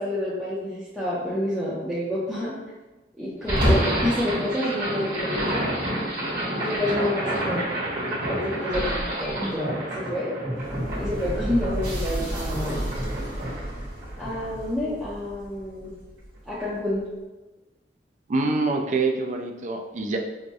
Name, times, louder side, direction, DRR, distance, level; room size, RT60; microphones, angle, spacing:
voice 1, 0.0-2.6 3.2-5.7 6.6-7.7 8.3-10.3 10.9-12.9 14.2-15.9 16.5-17.0, left 1 dB, ahead, -11 dB, 0.6 m, -28 dB
sound 1, 3.4-15.6, equal, 60° right, 1.2 m, -28 dB
voice 2, 18.3-20.2, right 3 dB, 45° right, 3 dB, 0.4 m, -25 dB
4.6 x 2.1 x 2.6 m, 1.1 s
head